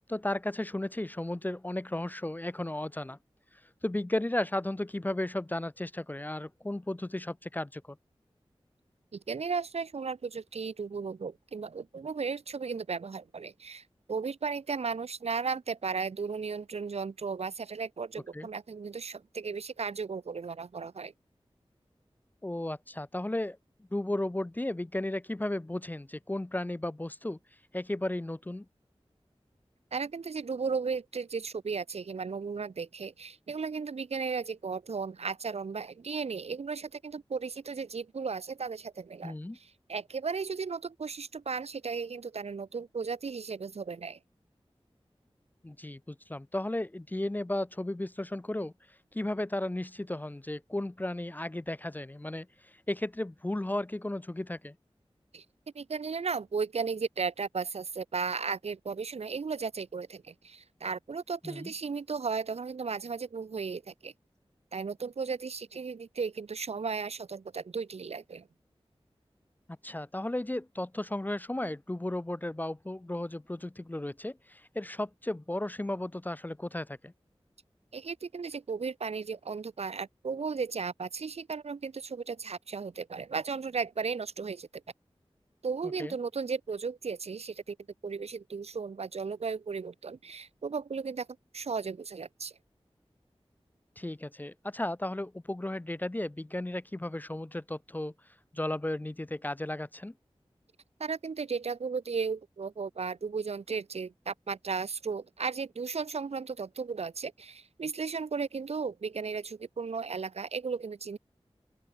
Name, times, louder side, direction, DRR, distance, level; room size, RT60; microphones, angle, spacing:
voice 1, 0.1-3.2 3.8-8.0 18.3-18.5 22.4-23.6 23.9-27.4 27.7-28.7 39.2-39.6 45.6-48.7 49.1-52.5 52.9-54.8 61.4-61.7 69.8-77.1 86.0-86.2 94.0-98.1 98.5-100.1, left 1 dB, 15° left, 0.4 m, -34 dB
voice 2, 9.1-21.1 29.9-39.4 39.9-44.2 55.3-55.4 55.7-64.1 64.7-68.5 77.9-84.7 85.6-87.8 88.0-91.3 91.5-92.5 101.0-111.2, right 5 dB, 85° right, 0.7 m, -35 dB
open air
wide cardioid pair, 50°, 10 cm